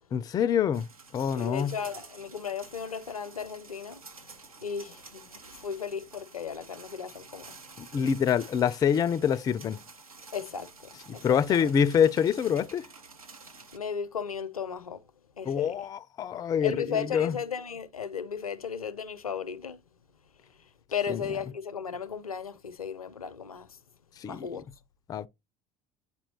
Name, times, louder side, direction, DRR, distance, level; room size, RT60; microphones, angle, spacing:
voice 1, 0.1-0.9 1.1-1.8 7.8-9.8 11.2-12.9 15.4-17.4 21.1-21.2 24.2-24.5 25.1-25.3, left 8 dB, 20° left, 0.3 m, -26 dB
sound 1, 0.7-13.8, right 4 dB, 85° right, 0.6 m, -50 dB
voice 2, 1.2-4.0 4.6-7.6 10.3-11.7 13.7-15.0 15.4-15.8 16.6-19.8 20.9-23.8 24.3-24.6, left 7 dB, 85° left, 0.5 m, -35 dB
8.8 x 4.2 x 2.7 m
figure-of-eight pair, 70°, 18 cm